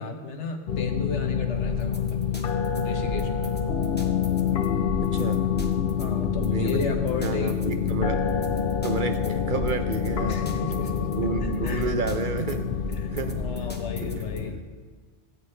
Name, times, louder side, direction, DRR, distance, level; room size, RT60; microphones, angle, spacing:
voice 1, 0.0-2.2 2.6-3.5 5.6-7.8 10.3-11.1 11.6-11.9 13.0-14.6, left 3 dB, 80° left, 4 dB, 1.3 m, -34 dB
sound 1, 0.7-14.5, left 8 dB, 60° left, 0.8 m, -27 dB
sound 2, 1.5-14.4, equal, 10° left, 0.8 m, -37 dB
voice 2, 5.0-5.4 6.5-8.2 8.8-10.4 11.1-12.8 13.1-13.4 14.0-14.2, right 4 dB, 55° right, 7 dB, 0.7 m, -30 dB
14.5 x 9.0 x 3.2 m, 1.5 s
omnidirectional pair, 1.2 m